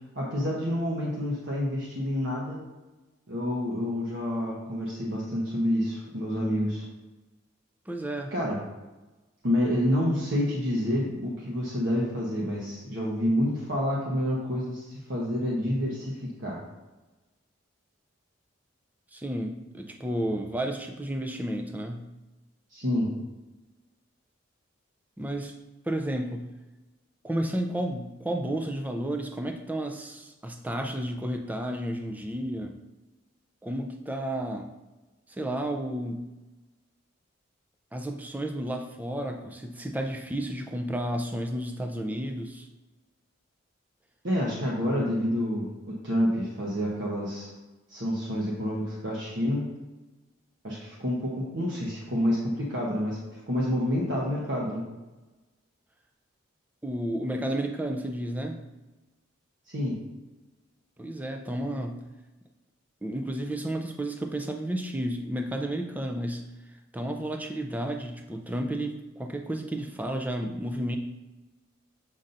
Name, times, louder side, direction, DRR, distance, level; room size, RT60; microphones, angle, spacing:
voice 1, 0.2-2.6 3.3-6.9 8.3-8.6 9.4-16.6 22.7-23.1 44.2-47.5 47.9-49.7 50.6-53.2 53.5-54.8 59.7-60.0, equal, 55° right, -4 dB, 1.0 m, -28 dB
voice 2, 7.9-8.3 19.1-22.1 25.2-25.5 25.8-26.5 27.2-32.7 33.6-34.7 35.3-36.2 37.9-42.7 56.8-58.6 61.0-62.0 63.0-66.5 66.9-71.0, right 1 dB, 10° right, 4 dB, 0.4 m, -32 dB
7.3 x 5.4 x 2.6 m, 1.1 s
head